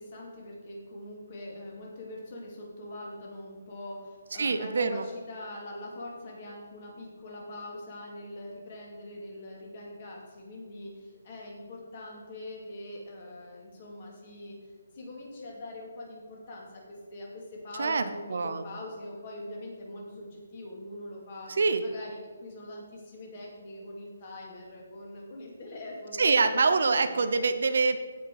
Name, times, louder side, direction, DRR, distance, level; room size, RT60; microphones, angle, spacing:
voice 1, 0.0-14.6 14.9-26.6 27.0-27.1, left 1 dB, 30° left, -2 dB, 2.5 m, -43 dB
voice 2, 4.4-5.0 17.8-18.7 21.6-21.8 26.2-28.0, right 4 dB, 55° right, 10 dB, 0.7 m, -25 dB
16.0 x 5.7 x 4.8 m, 1.5 s
hypercardioid pair, 175°, 0 cm